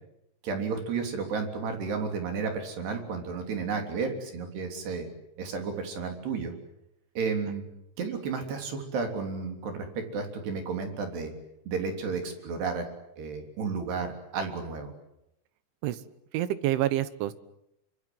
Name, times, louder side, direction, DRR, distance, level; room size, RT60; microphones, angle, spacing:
voice 1, 0.4-5.1 5.4-6.5 7.2-7.7 8.0-11.3 11.7-12.9 13.2-14.9, right 5 dB, 60° right, 5 dB, 5.3 m, -32 dB
voice 2, 16.3-17.3, right 13 dB, 80° right, 14 dB, 3.5 m, -27 dB
26.5 x 25.5 x 7.8 m, 0.81 s
omnidirectional pair, 5.5 m